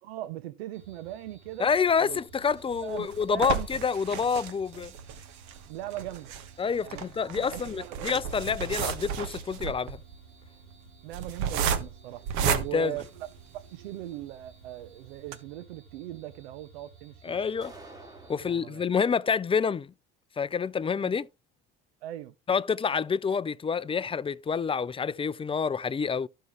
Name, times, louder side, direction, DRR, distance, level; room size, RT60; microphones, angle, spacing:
voice 1, 0.0-1.7 2.0-2.2 2.8-3.7 5.7-6.3 6.8-8.2 11.0-12.2 12.5-13.3 13.5-17.5 18.3-18.8 21.0-21.1 22.0-22.3, right 14 dB, 85° right, 0.7 m, -40 dB
sound 1, 0.7-18.6, right 4 dB, 45° right, 4.2 m, -55 dB
voice 2, 1.6-4.9 6.6-10.0 12.4-12.9 17.2-17.7 18.3-19.9 20.4-21.3 22.5-26.3, left 6 dB, 20° left, 0.5 m, -28 dB
sound 2, 2.4-13.8 14.3-14.4 14.7-14.8 15.2-15.3, right 8 dB, 70° right, 1.4 m, -33 dB
sound 3, 17.6-18.6, right 2 dB, 10° right, 3.1 m, -48 dB
14.0 x 5.5 x 3.0 m
hypercardioid pair, 80°, 30 cm